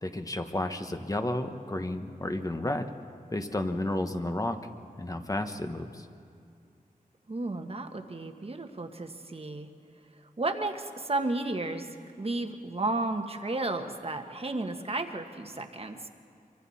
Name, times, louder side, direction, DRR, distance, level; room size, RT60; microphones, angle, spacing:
voice 1, 0.0-2.9 3.3-4.6 5.0-6.0, left 1 dB, 25° left, 7 dB, 1.2 m, -32 dB
voice 2, 7.3-9.7 10.4-11.9 12.2-16.1, right 2 dB, 40° right, 5 dB, 1.4 m, -33 dB
26.0 x 24.0 x 4.3 m, 2.5 s
wide cardioid pair, 90°, 15 cm